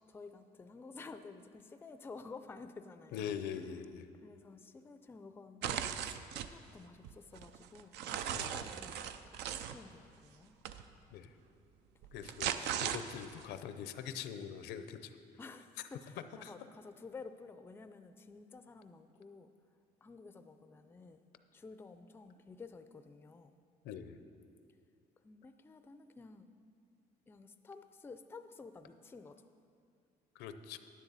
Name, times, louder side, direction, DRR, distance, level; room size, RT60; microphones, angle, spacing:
voice 1, 0.1-3.3 4.2-10.6 15.4-19.5 20.0-21.2 21.5-23.6 25.2-26.5 27.3-29.4, left 4 dB, 15° left, 10 dB, 0.4 m, -52 dB
voice 2, 3.1-4.1 8.3-8.6 11.1-11.3 12.1-15.2 16.4-16.5 23.8-24.2 30.4-30.8, left 8 dB, 80° left, 10 dB, 0.6 m, -43 dB
sound 1, 5.6-6.5 7.0-9.8 10.6-10.8 12.0-13.4, right 9 dB, 85° right, 0.5 m, -38 dB
9.9 x 9.9 x 4.0 m, 2.4 s
cardioid pair, 110°, 17 cm